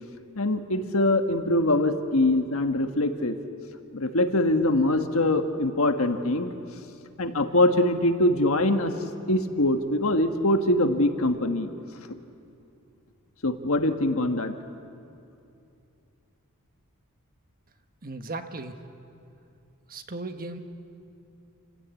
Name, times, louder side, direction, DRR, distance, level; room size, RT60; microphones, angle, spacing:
voice 1, 0.3-3.4 3.9-6.5 7.2-8.9 9.3-11.7 13.4-14.5, left 1 dB, 65° left, 7 dB, 1.5 m, -23 dB
voice 2, 18.0-18.8 19.9-20.6, right 2 dB, 40° right, 7 dB, 1.4 m, -36 dB
28.5 x 16.5 x 8.4 m, 2.6 s
head